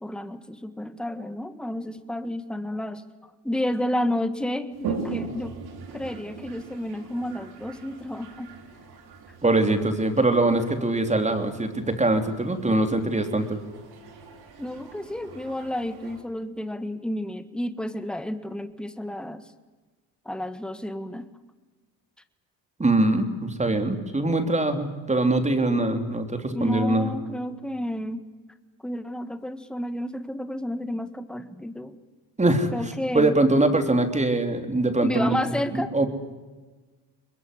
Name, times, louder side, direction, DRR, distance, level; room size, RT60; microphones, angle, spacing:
voice 1, 0.0-5.6 5.9-8.5 14.6-19.5 20.3-21.3 26.5-28.3 28.8-32.0 32.7-33.4 35.0-35.9, left 1 dB, ahead, 11 dB, 1.7 m, -31 dB
Toilet flush, 4.7-16.2, right 5 dB, 65° right, 5.0 m, -40 dB
voice 2, 9.4-13.6 22.8-27.1 32.4-32.7 33.1-35.4 35.7-36.1, right 2 dB, 15° right, 7 dB, 3.5 m, -23 dB
23.0 x 21.5 x 9.9 m, 1.3 s
supercardioid pair, 85°, 41 cm